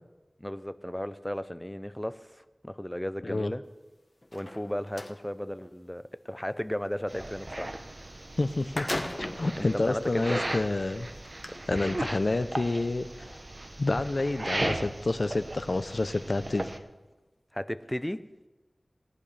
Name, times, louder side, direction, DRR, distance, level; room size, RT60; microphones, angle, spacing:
voice 1, 0.4-2.2 2.6-3.6 4.3-7.7 9.6-10.4 11.5-12.0 17.5-18.2, equal, 15° left, 12 dB, 0.6 m, -34 dB
sound 1, 4.2-5.2 8.0-8.1 8.4-9.5 10.2-10.3 11.2-11.5, left 1 dB, 40° left, 1.2 m, -35 dB
sound 2, 7.1-16.8, right 1 dB, 45° right, 0.9 m, -37 dB
voice 2, 8.4-8.9 9.2-11.1 11.7-13.4 13.8-16.8, left 2 dB, 65° left, 11 dB, 0.6 m, -29 dB
18.5 x 11.0 x 3.4 m, 1.1 s
wide cardioid pair, 40°, 0 cm